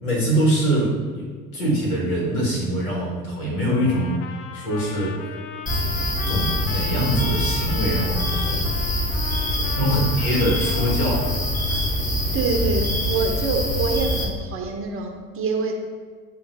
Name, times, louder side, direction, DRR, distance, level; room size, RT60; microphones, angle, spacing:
voice 1, 0.0-4.2 4.5-5.2 6.2-8.7 9.8-11.3 11.7-11.9, equal, 80° left, -4 dB, 1.5 m, -23 dB
Trumpet, 3.7-11.4, left 6 dB, 40° left, 0.4 m, -37 dB
sound 1, 5.7-14.2, left 1 dB, 20° left, 0.8 m, -24 dB
voice 2, 12.3-15.7, right 4 dB, 30° right, 1 dB, 0.7 m, -25 dB
7.3 x 2.5 x 2.6 m, 1.5 s
figure-of-eight pair, 70°, 42 cm